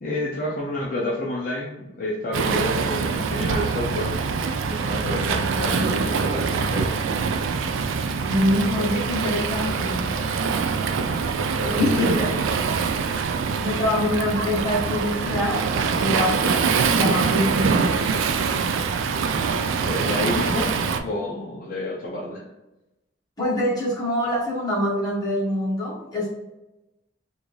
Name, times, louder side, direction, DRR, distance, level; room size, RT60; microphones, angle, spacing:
voice 1, 0.0-4.1 4.6-7.0 11.6-12.4 19.4-20.7 21.0-22.5, left 1 dB, 45° left, -5 dB, 0.6 m, -29 dB
Waves surf, 2.3-21.0, right 5 dB, 80° right, 0.3 m, -24 dB
voice 2, 8.3-10.2 11.7-12.2 13.6-15.6 15.9-17.9 23.4-26.3, left 1 dB, 20° left, -7 dB, 1.3 m, -25 dB
3.6 x 2.6 x 3.0 m, 0.95 s
head